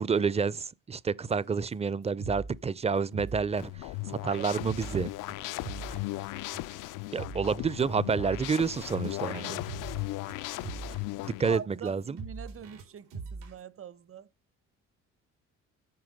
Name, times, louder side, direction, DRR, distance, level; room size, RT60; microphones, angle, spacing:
voice 1, 0.0-5.1 7.1-9.6 11.2-12.2, right 5 dB, 20° right, 0.6 m, -29 dB
sound 1, 1.7-1.8 2.0-2.6 3.0-13.6, right 4 dB, 90° right, 4.4 m, -43 dB
sound 2, 3.6-11.6, left 18 dB, 75° left, 0.6 m, -37 dB
voice 2, 4.2-5.1 9.3-9.4 11.5-14.3, right 8 dB, 45° right, 1.0 m, -44 dB
9.7 x 6.0 x 5.3 m
supercardioid pair, 70°, 32 cm